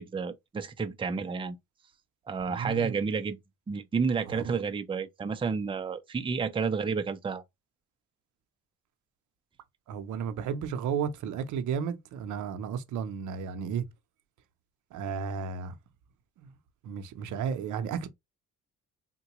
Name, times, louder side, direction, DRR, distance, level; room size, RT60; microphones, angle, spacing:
voice 1, 0.0-1.6 2.3-3.4 3.7-7.4, right 5 dB, 15° right, 0.5 m, -30 dB
voice 2, 2.5-2.9 4.3-4.6 9.9-13.8 14.9-15.7 16.4-16.5 16.8-18.1, right 7 dB, 80° right, 0.7 m, -33 dB
3.7 x 2.2 x 2.9 m
cardioid pair, 90°, 30 cm